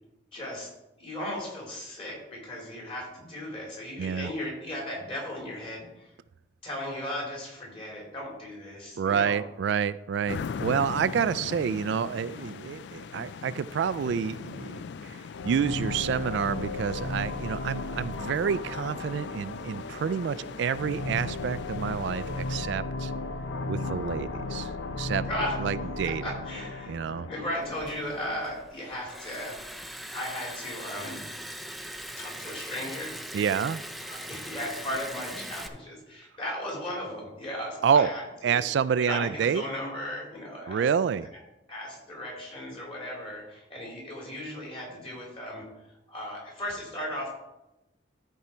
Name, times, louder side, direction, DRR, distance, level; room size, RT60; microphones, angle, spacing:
voice 1, 0.3-0.7 1.0-6.1 6.6-9.4 25.2-25.6 26.0-26.9 27.3-29.6 30.1-31.2 32.2-33.1 34.0-38.6 39.0-40.9 41.7-45.6 46.1-47.3, left 1 dB, 30° left, -2 dB, 3.2 m, -36 dB
voice 2, 4.0-4.3 9.0-23.1 23.7-24.7 25.0-25.2 25.6-26.3 26.9-27.3 33.3-33.8 37.8-38.1 38.4-39.6 40.7-41.3, right 7 dB, 65° right, 15 dB, 0.3 m, -28 dB
sound 1, 10.3-22.7, left 5 dB, 65° left, 0.3 m, -41 dB
sound 2, 15.3-28.7, left 3 dB, 85° left, 0.8 m, -35 dB
Liquid, 27.6-35.7, equal, ahead, 0.4 m, -41 dB
13.5 x 4.6 x 4.3 m, 0.94 s
head